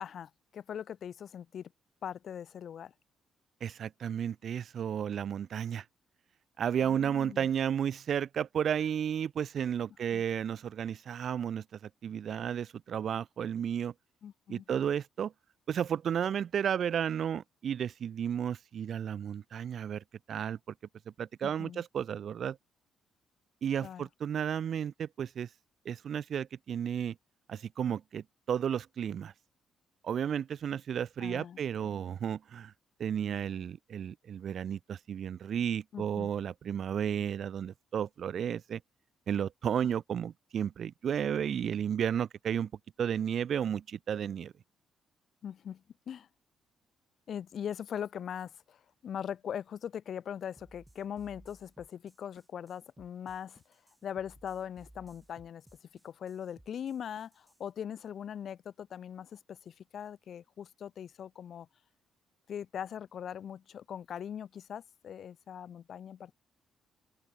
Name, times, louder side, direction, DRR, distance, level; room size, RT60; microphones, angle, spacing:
voice 1, 0.0-1.7 2.0-2.9 6.8-7.5 10.1-10.2 14.2-14.6 21.4-21.8 23.8-24.1 31.2-31.9 35.9-36.3 45.4-46.3 47.3-53.6 54.0-55.6 56.0-61.7 62.5-66.4, left 9 dB, 60° left, 4.9 m, -41 dB
voice 2, 3.6-5.8 6.6-11.6 12.0-13.9 14.5-15.3 15.7-20.6 21.2-22.6 23.6-25.5 25.9-27.1 27.5-29.3 30.0-32.7 33.0-38.8 39.3-42.7 43.0-44.5, right 8 dB, 60° right, 0.5 m, -33 dB
sound 1, 50.6-57.7, right 1 dB, 10° right, 7.8 m, -59 dB
open air
cardioid pair, 90°, 0 cm